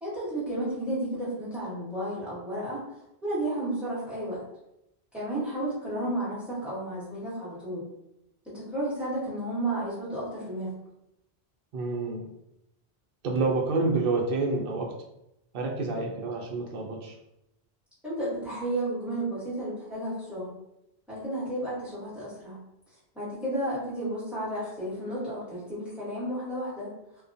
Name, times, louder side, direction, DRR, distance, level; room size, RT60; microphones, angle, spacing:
voice 1, 0.0-2.8 3.2-4.4 5.1-7.9 8.4-10.7 18.0-20.5 21.1-22.6 23.1-26.9, right 1 dB, ahead, -10 dB, 1.1 m, -32 dB
voice 2, 11.7-12.3 13.2-14.9 15.5-17.1, right 3 dB, 65° right, 0 dB, 0.7 m, -28 dB
2.3 x 2.1 x 2.5 m, 0.84 s
omnidirectional pair, 1.1 m